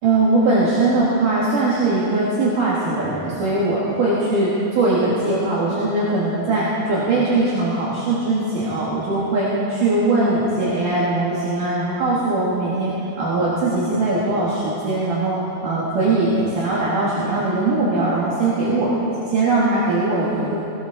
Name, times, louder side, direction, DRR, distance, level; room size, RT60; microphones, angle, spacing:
voice 1, 0.0-18.9 19.3-20.6, right 2 dB, 65° right, -7 dB, 3.5 m, -20 dB
19.0 x 18.5 x 4.1 m, 2.8 s
omnidirectional pair, 4.2 m